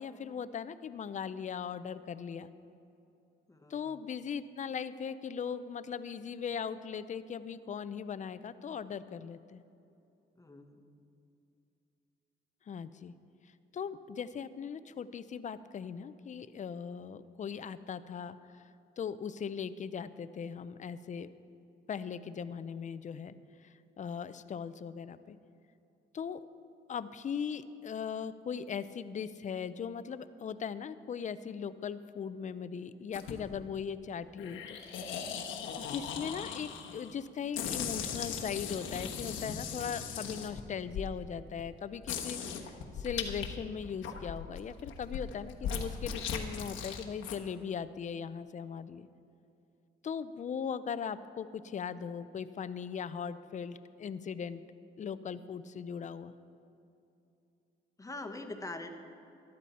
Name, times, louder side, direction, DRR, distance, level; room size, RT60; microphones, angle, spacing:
voice 1, 0.0-2.5 3.7-9.6 12.7-13.1 13.7-18.6 19.0-21.3 21.9-23.4 23.6-25.4 26.1-26.4 26.9-34.8 35.1-35.2 35.8-49.1 50.0-54.6 55.0-56.3, left 7 dB, 40° left, 13 dB, 0.5 m, -39 dB
voice 2, 3.5-4.0 10.4-11.0 58.0-58.9, left 2 dB, 15° left, 6 dB, 1.1 m, -44 dB
sound 1, 33.1-33.6 34.4-37.1 37.5-41.1 41.6-41.7 42.0-43.5 43.8-47.4, left 7 dB, 85° left, 1.2 m, -38 dB
14.0 x 11.5 x 4.2 m, 2.7 s
cardioid pair, 90°, 20 cm